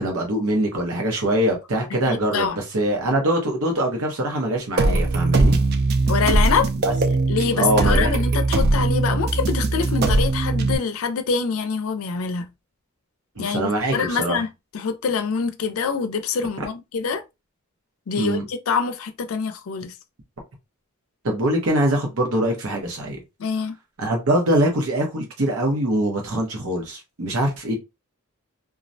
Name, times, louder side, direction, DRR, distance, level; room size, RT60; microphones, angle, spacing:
voice 1, 0.0-2.5 2.7-5.6 6.8-6.9 7.6-8.1 13.4-14.4 18.2-18.4 21.2-23.2 24.0-27.7, right 1 dB, 90° right, 0.7 m, -23 dB
voice 2, 1.9-2.6 6.1-6.7 7.3-12.5 13.4-17.2 18.1-20.0 23.4-23.7, left 5 dB, 85° left, 0.4 m, -25 dB
sound 1, 4.8-10.8, right 2 dB, 50° right, 0.3 m, -20 dB
2.3 x 2.0 x 2.6 m
head